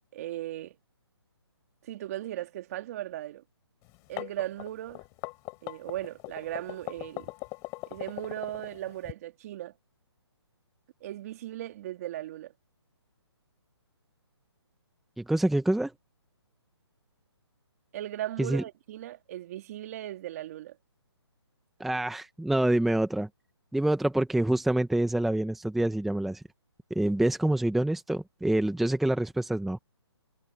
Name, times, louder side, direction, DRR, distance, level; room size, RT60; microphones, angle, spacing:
voice 1, 0.1-0.8 1.8-3.4 4.1-5.0 5.6-7.3 7.9-9.7 11.0-12.5 17.9-20.8, right 13 dB, 35° right, 2.7 m, -37 dB
sound 1, 3.9-9.1, left 26 dB, 20° left, 4.5 m, -40 dB
voice 2, 15.2-15.9 18.4-18.6 21.8-23.3 23.7-26.4 26.9-29.8, right 1 dB, ahead, 1.0 m, -26 dB
hypercardioid pair, 160°, 14 cm